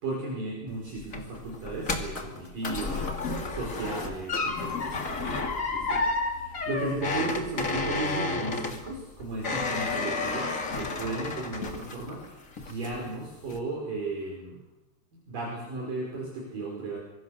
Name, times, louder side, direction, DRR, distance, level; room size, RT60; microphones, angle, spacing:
voice 1, 0.0-3.2 3.5-14.6 15.1-17.0, right 2 dB, 50° right, -3 dB, 6.8 m, -35 dB
sound 1, 0.7-12.2 12.6-13.1 13.5-13.6, left 3 dB, 35° left, 1.3 m, -31 dB
25.5 x 22.5 x 6.6 m, 0.95 s
omnidirectional pair, 5.0 m